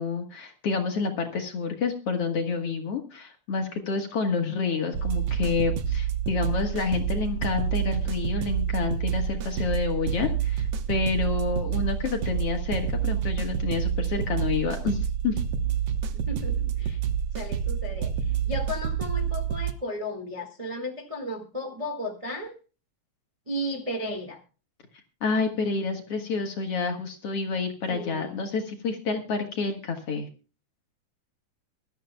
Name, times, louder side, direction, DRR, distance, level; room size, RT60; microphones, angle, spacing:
voice 1, 0.0-15.4 25.2-30.3, left 4 dB, 55° left, 5 dB, 1.8 m, -29 dB
sound 1, 4.9-19.7, right 8 dB, 75° right, 1.4 m, -28 dB
voice 2, 16.3-17.0 17.3-22.5 23.5-24.4 27.9-28.4, equal, 35° right, 0 dB, 0.5 m, -34 dB
24.0 x 12.5 x 2.2 m, 0.35 s
omnidirectional pair, 4.2 m